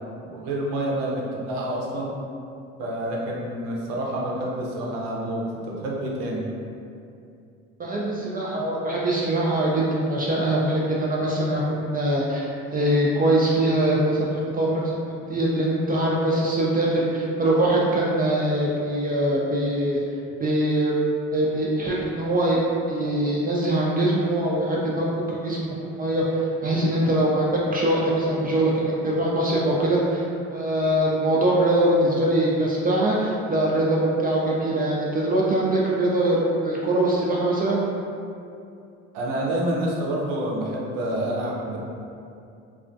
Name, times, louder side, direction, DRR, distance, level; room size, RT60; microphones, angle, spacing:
voice 1, 0.2-2.1 2.8-6.5 39.1-41.8, right 1 dB, 80° right, -3 dB, 0.6 m, -28 dB
voice 2, 7.8-12.5 12.7-20.0 20.4-20.9 21.3-22.6 22.9-37.8, right 1 dB, 30° right, -4 dB, 0.3 m, -23 dB
2.4 x 2.2 x 2.5 m, 2.5 s
supercardioid pair, 70°, 32 cm